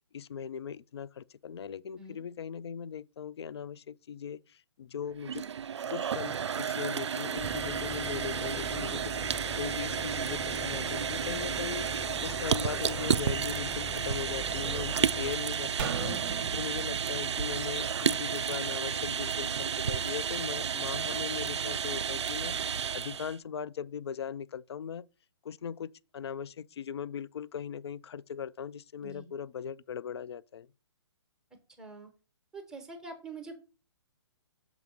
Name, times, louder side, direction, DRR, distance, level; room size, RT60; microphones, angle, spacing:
voice 1, 0.1-5.4 5.9-22.6 22.9-25.1 25.4-30.7, left 7 dB, 60° left, 0.4 m, -39 dB
sound 1, 5.1-23.4, right 7 dB, 70° right, 0.4 m, -32 dB
sound 2, 7.4-15.4, left 2 dB, 15° left, 0.5 m, -42 dB
sound 3, 15.8-19.1 19.4-19.5, right 8 dB, 45° right, 0.7 m, -39 dB
voice 2, 31.8-32.1 32.5-33.5, right 2 dB, 5° right, 1.2 m, -45 dB
6.0 x 3.4 x 5.6 m
figure-of-eight pair, 130°, 15 cm